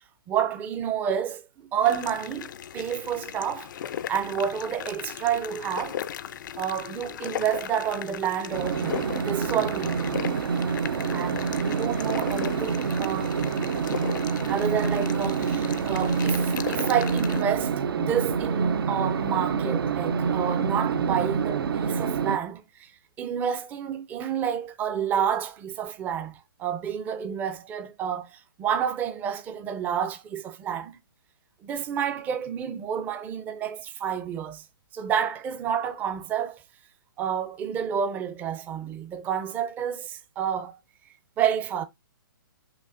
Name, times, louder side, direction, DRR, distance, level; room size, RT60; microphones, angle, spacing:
voice 1, 0.3-1.5 1.7-3.7 4.1-6.0 6.6-10.0 11.1-13.4 14.5-22.9 23.2-31.0 31.6-34.6 34.9-36.6 37.2-40.8 41.4-41.9, right 8 dB, 15° right, 0.4 m, -29 dB
sound 1, 1.8-17.4, left 10 dB, 55° left, 0.4 m, -37 dB
sound 2, 8.5-22.4, right 6 dB, 75° right, 0.5 m, -27 dB
5.7 x 2.6 x 2.5 m
hypercardioid pair, 145°, 12 cm